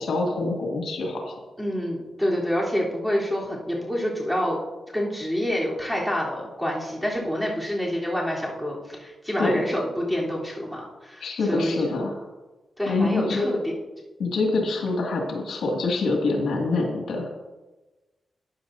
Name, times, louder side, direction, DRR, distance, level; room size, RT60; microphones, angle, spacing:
voice 1, 0.0-1.3 9.4-9.6 11.2-12.2 12.9-13.5 14.2-17.3, left 3 dB, 85° left, -1 dB, 2.1 m, -25 dB
voice 2, 1.6-4.6 4.9-11.7 12.8-13.7 14.5-14.7, equal, ahead, -5 dB, 3.4 m, -27 dB
13.5 x 9.7 x 2.7 m, 1.2 s
cardioid pair, 90°, 0 cm